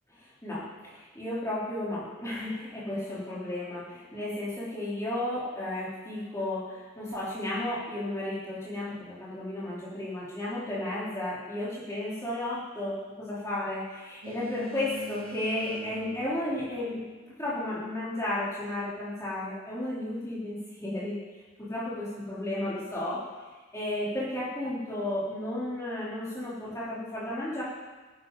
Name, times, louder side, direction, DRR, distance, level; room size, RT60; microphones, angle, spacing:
voice 1, 0.1-17.0 17.4-21.2 21.6-23.2 23.7-27.6, left 1 dB, 15° left, -9 dB, 3.7 m, -33 dB
Keyboard (musical), 7.1-9.4, right 2 dB, 30° right, 0.6 m, -49 dB
Boat Water vehicle, 14.2-17.4, equal, 70° right, 2.3 m, -42 dB
15.5 x 10.5 x 4.0 m, 1.3 s
head